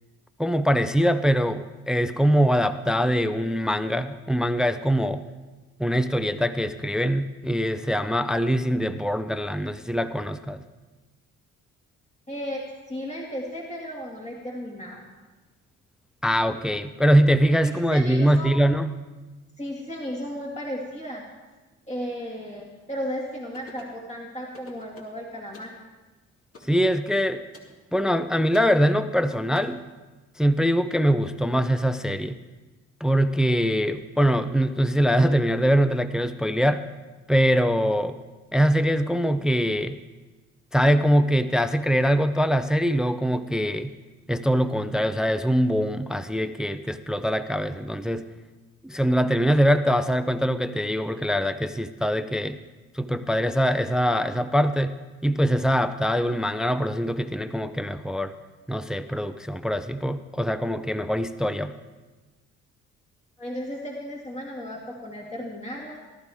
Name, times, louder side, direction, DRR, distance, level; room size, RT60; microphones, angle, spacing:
voice 1, 0.4-5.2 5.8-10.6 16.2-19.0 26.6-27.4 27.9-29.8 30.4-32.4 33.0-36.8 37.3-38.2 38.5-40.0 40.7-43.9 44.3-48.3 48.8-52.6 52.9-58.3 58.7-61.7, equal, ahead, 12 dB, 0.5 m, -23 dB
voice 2, 12.3-12.6 12.9-15.0 17.6-18.6 19.6-21.2 21.9-25.7 63.4-66.0, equal, 20° left, -2 dB, 2.2 m, -34 dB
sound 1, 23.5-24.0 24.5-25.2 25.5-25.8 26.5-26.8 27.5-27.7 28.5-28.7 29.5-29.6, left 3 dB, 50° left, 2.7 m, -48 dB
18.5 x 12.0 x 3.5 m, 1.2 s
cardioid pair, 90°, 30 cm